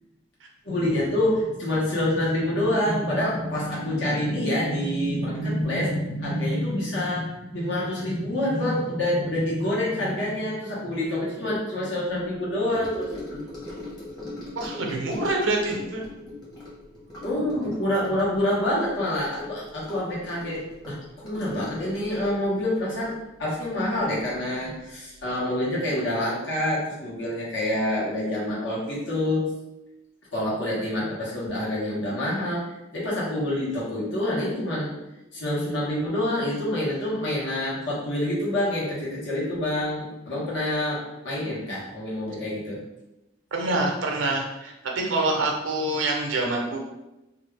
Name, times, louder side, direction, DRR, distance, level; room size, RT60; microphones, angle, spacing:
voice 1, 0.6-13.4 17.2-20.9 21.2-23.1 23.4-29.5 30.3-32.6 32.9-34.9 35.3-42.8, left 1 dB, 65° left, -7 dB, 1.2 m, -27 dB
Gurgling / Sink (filling or washing) / Trickle dribble, 12.7-24.3 24.6-24.9 25.2-25.3, left 2 dB, 20° left, 1.0 m, -40 dB
voice 2, 14.5-16.0 41.4-41.5 43.5-46.8, right 2 dB, 75° right, 0 dB, 0.6 m, -26 dB
2.6 x 2.4 x 3.3 m, 0.97 s
head